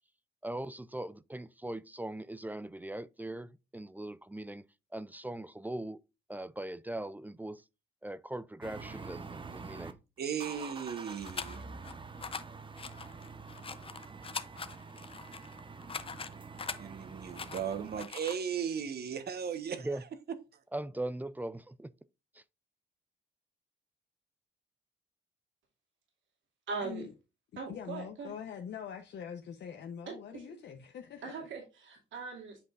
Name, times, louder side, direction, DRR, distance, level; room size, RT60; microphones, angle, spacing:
voice 1, 0.4-4.6 4.9-6.0 6.3-7.6 8.0-10.0 19.8-20.0 20.7-21.9 22.3-22.4, right 1 dB, 10° right, 0.3 m, -40 dB
sound 1, 8.6-9.9 10.3-18.0, right 4 dB, 25° right, 0.7 m, -47 dB
voice 2, 10.2-11.7 16.8-19.9, right 7 dB, 55° right, 1.1 m, -36 dB
sound 2, 11.2-11.9 12.2-12.4 12.8-16.8 17.3-18.4, left 5 dB, 30° left, 0.6 m, -42 dB
voice 3, 26.7-27.1 27.6-28.4 30.1-30.4 31.2-32.6, right 4 dB, 75° right, 2.5 m, -40 dB
voice 4, 27.5-31.5, left 7 dB, 60° left, 0.9 m, -44 dB
8.3 x 5.1 x 2.5 m
cardioid pair, 90°, 20 cm